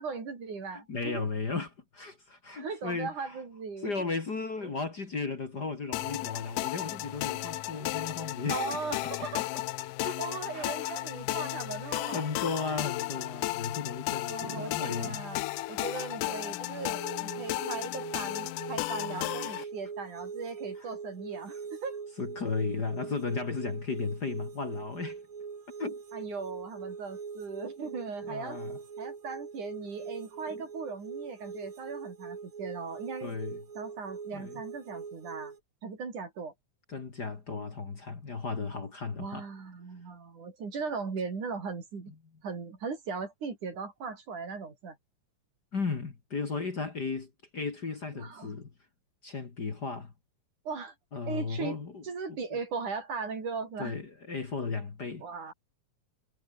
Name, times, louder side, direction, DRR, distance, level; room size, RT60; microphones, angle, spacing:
voice 1, 0.0-1.3 2.5-3.9 4.6-4.8 8.5-9.5 10.2-12.3 14.3-15.4 15.7-22.0 26.1-28.6 29.0-33.3 33.8-35.5 35.8-36.5 39.2-42.1 42.4-45.0 48.1-48.5 50.7-50.9 51.3-51.8 52.0-54.0 55.2-55.5, right 5 dB, 70° right, 6.5 m, -38 dB
voice 2, 0.7-3.4 3.8-8.6 9.0-9.6 10.0-10.2 10.5-11.0 11.8-15.2 19.3-19.7 20.8-20.9 22.2-25.2 25.8-26.0 28.3-28.8 33.2-33.6 34.3-34.6 36.9-39.5 45.7-48.7 49.2-50.1 51.1-52.0 52.3-52.6 53.8-55.3, left 4 dB, 35° left, 2.5 m, -35 dB
sound 1, 5.9-19.6, left 18 dB, 90° left, 2.3 m, -34 dB
sound 2, 16.8-35.6, right 6 dB, 45° right, 3.4 m, -42 dB
omnidirectional pair, 3.6 m